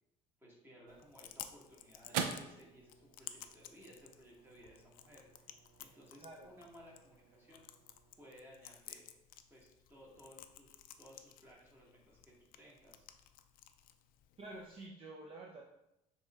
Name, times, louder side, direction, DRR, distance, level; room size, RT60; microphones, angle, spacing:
voice 1, 0.4-5.2 5.8-7.7 8.2-9.1 9.5-13.1, equal, 15° right, -5 dB, 1.7 m, -59 dB
Chewing mastication, 0.9-14.9, left 11 dB, 70° left, 0.4 m, -56 dB
sound 1, 0.9-9.4, right 7 dB, 85° right, 0.5 m, -47 dB
voice 2, 6.2-6.5 14.4-15.6, right 2 dB, 35° right, -1 dB, 0.6 m, -49 dB
6.8 x 3.2 x 2.4 m, 0.86 s
cardioid pair, 120°, 15 cm